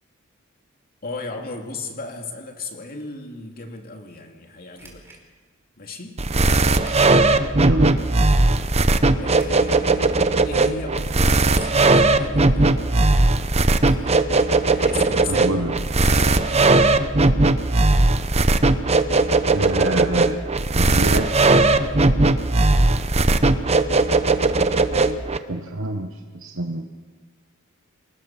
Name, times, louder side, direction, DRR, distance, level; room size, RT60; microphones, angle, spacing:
voice 1, 1.0-5.0 5.8-6.2 9.1-13.2 14.5-16.9 21.8-22.1, left 3 dB, 45° left, 3 dB, 2.8 m, -36 dB
sound 1, 4.8-5.2 6.8-7.3 7.8-7.9 9.3-9.8 11.5-12.1 12.7-12.8 13.8-14.3 14.6-14.7 16.0-16.5 16.7-16.8 17.1-17.2, right 2 dB, 10° right, 4.3 m, -45 dB
sound 2, 6.2-25.4, right 2 dB, 30° right, 0.9 m, -18 dB
voice 2, 7.6-8.0 15.3-15.8 19.5-21.3 23.3-23.4 25.5-26.9, right 2 dB, 65° right, 4 dB, 1.2 m, -27 dB
27.5 x 19.5 x 6.0 m, 1.5 s
head